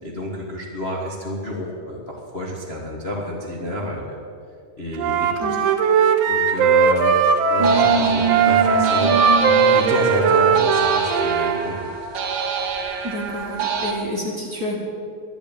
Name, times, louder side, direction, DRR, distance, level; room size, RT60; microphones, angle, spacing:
voice 1, 0.0-4.2 4.8-5.6 6.3-11.9, left 1 dB, 80° left, -3 dB, 0.5 m, -29 dB
Wind instrument woodwind instrument, 4.9-11.6, right 6 dB, 90° right, 1.4 m, -18 dB
sound 1, 7.6-13.9, right 5 dB, 60° right, 1.2 m, -24 dB
voice 2, 13.0-14.8, left 1 dB, 40° right, -2 dB, 1.4 m, -29 dB
11.0 x 10.0 x 8.8 m, 2.4 s
omnidirectional pair, 3.9 m